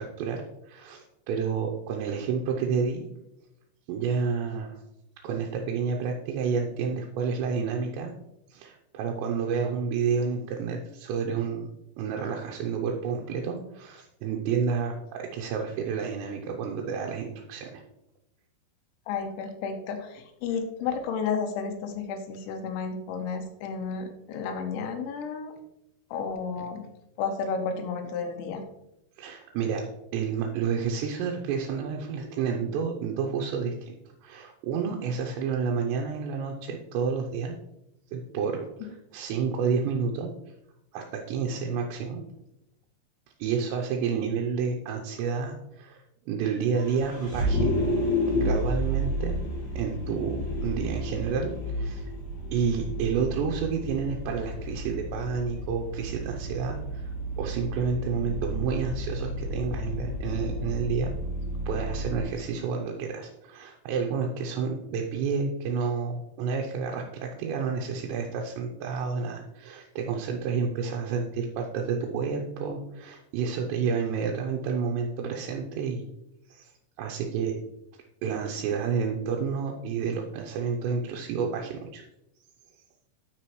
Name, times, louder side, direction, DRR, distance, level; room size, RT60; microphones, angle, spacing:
voice 1, 0.0-3.1 3.9-4.8 5.2-8.1 8.5-17.8 29.2-29.9 30.1-37.5 38.1-40.3 40.9-42.2 43.4-47.8 48.3-49.4 49.8-52.1 52.5-61.1 61.7-76.1 76.5-76.7 77.0-77.6 78.2-82.0 82.7-82.8, right 6 dB, 80° right, 0 dB, 2.9 m, -30 dB
voice 2, 19.1-25.5 26.1-26.9 27.2-28.6 38.8-38.9, left 5 dB, 85° left, 6 dB, 3.2 m, -32 dB
Vehicle, 46.8-62.2, equal, 55° left, 4.1 m, -31 dB
11.5 x 5.0 x 3.0 m, 0.84 s
omnidirectional pair, 5.3 m